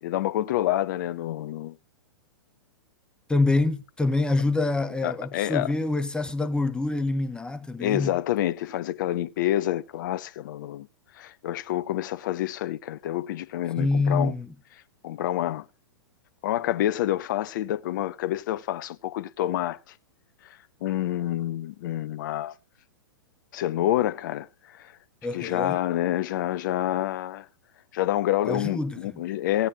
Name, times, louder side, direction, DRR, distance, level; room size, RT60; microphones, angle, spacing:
voice 1, 0.0-1.8 5.0-5.7 7.8-10.9 11.2-14.3 15.0-15.6 16.4-19.8 20.8-22.5 23.5-24.5 24.7-24.9 25.3-27.5 27.9-29.7, left 13 dB, 50° left, 0.9 m, -27 dB
voice 2, 3.3-8.1 13.8-14.5 25.2-25.8 28.5-29.2, left 2 dB, 5° left, 1.0 m, -26 dB
16.5 x 9.7 x 2.8 m
figure-of-eight pair, 105°, 13 cm